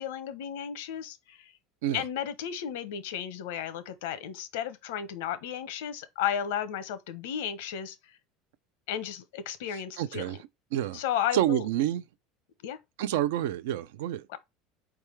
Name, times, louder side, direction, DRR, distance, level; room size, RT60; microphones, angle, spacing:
voice 1, 0.0-1.5 1.9-8.2 8.9-10.4 10.9-11.7 12.6-12.8 14.3-14.4, left 9 dB, 80° left, 0.8 m, -34 dB
voice 2, 10.0-10.4 10.7-11.0 11.3-12.0 13.0-14.3, right 12 dB, 85° right, 0.5 m, -28 dB
4.6 x 3.5 x 3.1 m
supercardioid pair, 115°, 0 cm